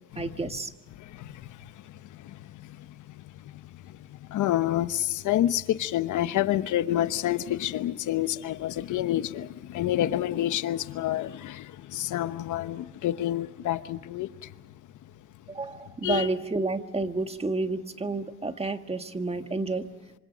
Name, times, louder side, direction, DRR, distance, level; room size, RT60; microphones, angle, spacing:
voice 1, 0.1-0.7 15.5-19.9, right 3 dB, 20° right, 7 dB, 1.7 m, -30 dB
voice 2, 1.1-1.6 2.2-2.7 3.5-3.6 4.3-14.3 16.0-16.3, left 13 dB, 80° left, 13 dB, 1.0 m, -28 dB
27.0 x 25.0 x 5.2 m, 1.1 s
cardioid pair, 90°, 30 cm